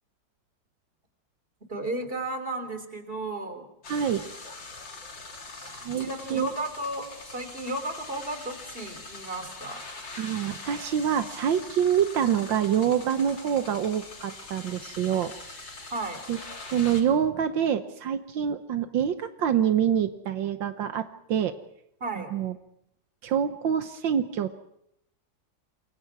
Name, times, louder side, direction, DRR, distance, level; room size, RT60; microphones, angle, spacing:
voice 1, 1.7-3.7 6.0-9.8 15.9-16.2 22.0-22.3, right 2 dB, 30° right, 8 dB, 3.5 m, -34 dB
sound 1, 3.8-17.0, left 3 dB, 75° left, 4.0 m, -43 dB
voice 2, 3.9-4.3 5.6-6.5 10.2-15.3 16.3-16.4 16.7-21.5 22.2-22.5 23.2-24.6, right 9 dB, 80° right, 9 dB, 1.7 m, -26 dB
28.5 x 23.0 x 4.8 m, 0.79 s
omnidirectional pair, 2.0 m